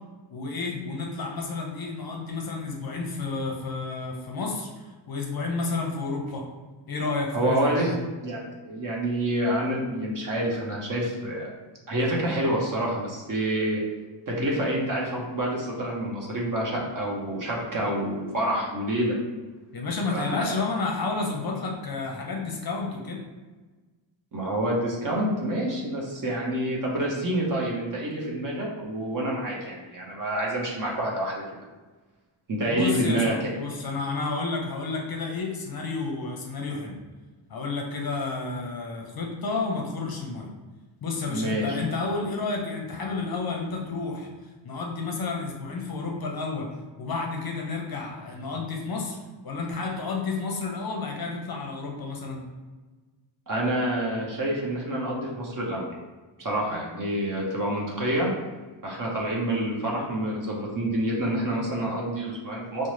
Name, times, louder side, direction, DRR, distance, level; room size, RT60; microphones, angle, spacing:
voice 1, 0.3-6.4 6.9-7.9 19.7-23.2 32.7-37.0 37.5-40.5 41.0-44.3 44.6-52.4, left 3 dB, 50° left, 0 dB, 0.6 m, -31 dB
voice 2, 7.3-7.9 8.2-8.4 8.6-11.5 11.9-13.8 14.3-19.2 20.1-20.4 24.3-31.4 32.5-33.3 41.3-41.8 53.5-55.9 56.4-58.3 58.8-62.9, right 1 dB, 40° right, -3 dB, 0.8 m, -27 dB
5.2 x 2.1 x 3.1 m, 1.3 s
wide cardioid pair, 160°, 49 cm